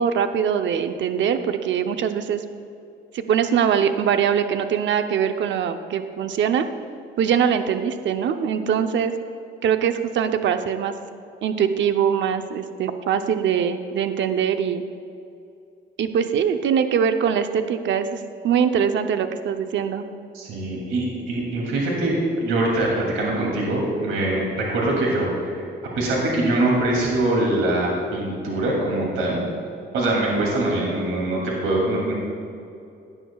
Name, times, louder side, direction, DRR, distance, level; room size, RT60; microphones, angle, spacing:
voice 1, 0.0-2.4 3.1-6.7 7.2-9.1 9.6-10.9 11.4-14.8 16.0-20.0, right 8 dB, 70° right, 8 dB, 0.7 m, -22 dB
voice 2, 20.3-25.6 25.9-29.4 29.9-32.1, right 1 dB, 85° right, -3 dB, 2.7 m, -23 dB
17.0 x 10.0 x 2.3 m, 2.6 s
cardioid pair, 90°, 20 cm